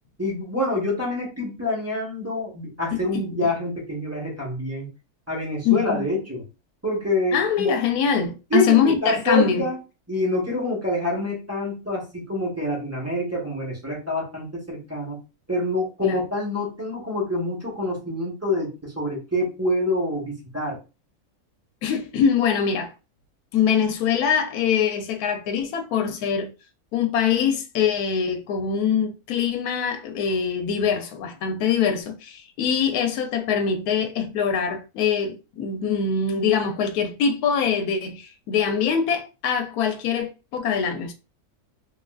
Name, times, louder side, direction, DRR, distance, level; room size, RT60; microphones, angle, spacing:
voice 1, 0.2-4.9 5.3-6.4 6.8-7.7 8.5-9.8 10.1-15.2 15.5-20.8, left 1 dB, 10° right, 0.8 m, -26 dB
voice 2, 2.9-3.2 5.6-6.1 7.3-9.6 16.0-16.2 21.8-22.9 23.5-26.5 26.9-41.1, left 7 dB, 80° left, 1.1 m, -23 dB
3.5 x 2.4 x 2.3 m
omnidirectional pair, 1.6 m